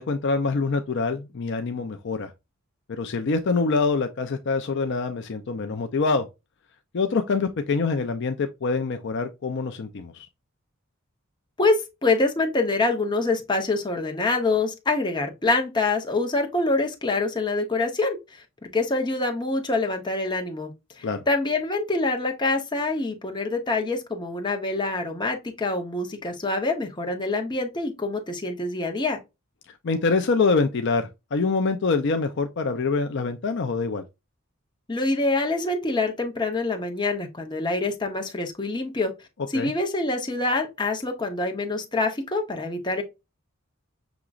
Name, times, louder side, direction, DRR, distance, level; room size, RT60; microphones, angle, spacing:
voice 1, 0.0-2.3 2.9-6.3 6.9-10.3 21.0-21.2 29.8-34.0 39.5-39.7, left 4 dB, 55° left, 0.5 m, -25 dB
voice 2, 11.6-18.4 18.7-20.7 21.0-29.2 34.9-39.1 39.5-43.0, left 3 dB, 20° left, 0.9 m, -25 dB
6.0 x 2.9 x 2.4 m
head